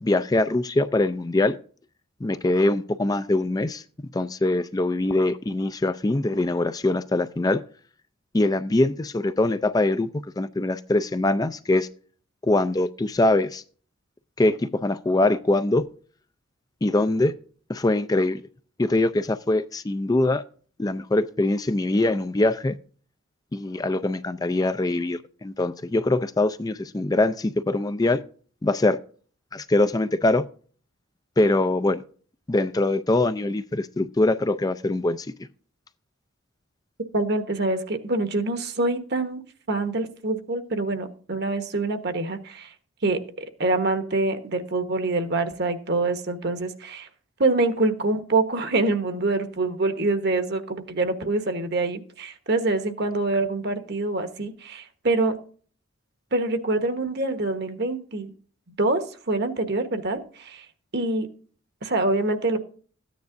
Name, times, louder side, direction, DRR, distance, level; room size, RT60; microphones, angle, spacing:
voice 1, 0.0-1.6 2.2-3.8 4.1-7.6 8.3-10.1 10.4-11.9 12.4-13.6 14.4-15.8 16.8-17.3 17.7-18.4 18.8-20.4 20.8-22.8 23.5-28.2 28.6-29.0 29.5-30.4 31.4-32.0 32.5-35.3, left 2 dB, 20° left, 0.4 m, -23 dB
voice 2, 37.1-39.4 39.7-42.7 43.0-47.1 47.4-55.4 56.3-58.3 58.8-60.6 60.9-61.3 61.8-62.6, right 2 dB, 55° right, 1.2 m, -25 dB
14.0 x 9.4 x 2.6 m
head